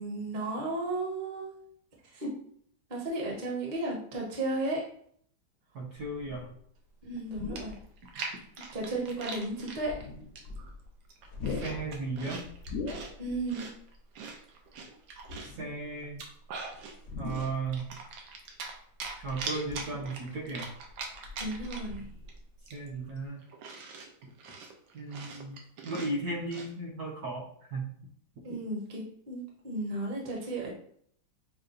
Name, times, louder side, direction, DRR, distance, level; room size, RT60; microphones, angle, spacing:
voice 1, 0.0-1.5 2.1-2.3 2.9-4.8 7.0-7.7 8.7-9.9 13.2-13.7 17.3-17.4 21.4-22.0 28.4-30.7, right 2 dB, 30° right, -2 dB, 0.9 m, -34 dB
voice 2, 5.7-6.5 11.6-12.4 15.6-16.2 17.2-17.9 19.2-20.7 22.7-23.4 24.9-25.6 25.8-27.4 27.7-27.9, right 3 dB, 60° right, -2 dB, 1.2 m, -35 dB
sound 1, 6.0-6.6 7.2-8.0 8.6-8.7 9.7-10.9 11.2-13.5 13.8-13.9 15.2-16.0 17.0-17.9 19.0-20.4 20.8-22.6 22.9-23.1, left 4 dB, 70° left, 1.1 m, -41 dB
Chewing mastication, 7.2-7.3 7.6-9.8 10.3-10.7 11.0-13.1 13.5-15.6 16.0-17.0 17.3-18.7 19.0-22.0 22.3-22.4 22.7-26.7, right 4 dB, 80° right, 1.4 m, -41 dB
6.5 x 2.2 x 2.5 m, 0.63 s
omnidirectional pair, 2.1 m